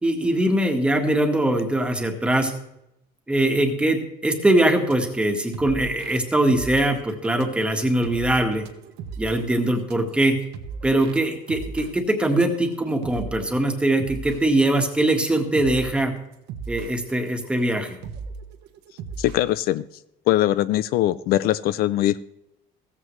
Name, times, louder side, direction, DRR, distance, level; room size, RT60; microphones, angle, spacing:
voice 1, 0.0-2.5 3.3-8.7 9.2-10.3 10.8-16.1 16.7-18.0, right 1 dB, 5° right, 4 dB, 1.6 m, -22 dB
sound 1, 4.9-14.5 15.1-15.2 15.5-15.9 16.3-19.5, right 5 dB, 75° right, 1.3 m, -37 dB
voice 2, 19.2-19.8 20.3-22.2, left 14 dB, 60° left, 16 dB, 0.5 m, -21 dB
16.0 x 14.5 x 3.2 m, 0.83 s
cardioid pair, 170°, 17 cm